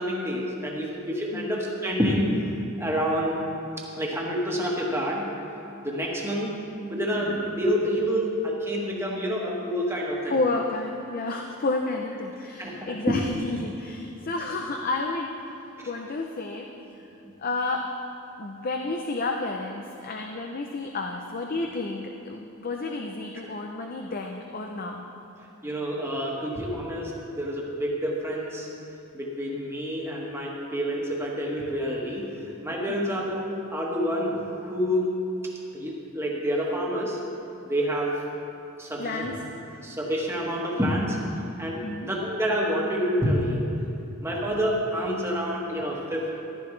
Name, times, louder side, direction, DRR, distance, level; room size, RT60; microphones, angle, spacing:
voice 1, 0.0-3.3 3.8-5.3 5.8-10.4 12.6-13.2 15.8-15.9 17.2-17.3 25.6-28.7 29.1-33.4 33.7-35.2 35.4-37.2 37.6-38.2 38.8-39.4 39.8-41.2 41.6-43.7 44.2-46.4, equal, 10° right, -3 dB, 1.5 m, -28 dB
voice 2, 10.3-17.0 17.4-17.9 18.4-25.0 32.9-33.2 39.0-39.4 39.7-39.8 41.8-42.1 44.0-44.1, left 3 dB, 40° left, 2 dB, 0.6 m, -31 dB
14.5 x 11.5 x 3.3 m, 2.8 s
head